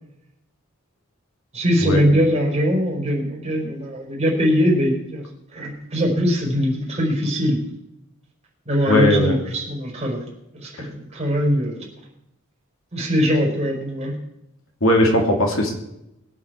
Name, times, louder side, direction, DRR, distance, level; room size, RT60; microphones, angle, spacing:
voice 1, 1.5-5.2 5.5-7.6 8.6-10.3 10.5-11.8 12.9-14.2, equal, 30° right, -2 dB, 4.5 m, -21 dB
voice 2, 8.9-9.4 10.8-10.9 14.8-15.7, left 1 dB, 65° left, 2 dB, 2.6 m, -18 dB
22.0 x 7.8 x 4.7 m, 0.84 s
head